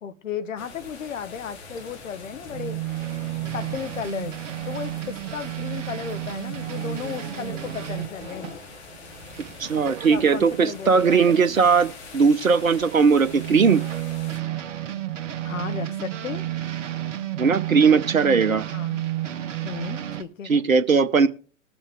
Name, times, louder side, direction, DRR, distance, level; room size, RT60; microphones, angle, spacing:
voice 1, 0.0-2.8 3.5-4.4 4.6-8.5 10.1-11.6 15.4-16.4 18.7-19.0 19.6-20.7, left 7 dB, 75° left, 1.2 m, -34 dB
sound 1, 0.6-14.4, left 4 dB, 55° left, 3.0 m, -44 dB
sound 2, 1.2-5.9 6.7-9.2 9.9-10.0, left 2 dB, 20° left, 2.4 m, -45 dB
sound 3, 2.5-12.0 12.4-20.2, right 13 dB, 65° right, 1.4 m, -32 dB
voice 2, 9.6-13.8 17.4-18.7 20.5-21.3, right 5 dB, 85° right, 0.9 m, -19 dB
20.5 x 7.1 x 3.4 m
figure-of-eight pair, 100°, 40 cm